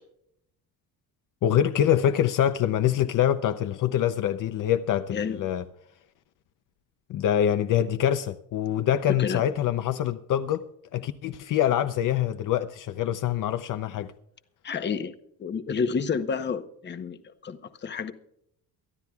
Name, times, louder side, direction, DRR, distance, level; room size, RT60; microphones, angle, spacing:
voice 1, 1.4-5.6 7.1-10.6 10.9-14.1, left 10 dB, 55° left, 0.7 m, -25 dB
voice 2, 14.6-15.1 15.4-17.2 17.4-18.1, left 6 dB, 30° left, 0.9 m, -29 dB
23.5 x 12.5 x 2.3 m
cardioid pair, 150°, 38 cm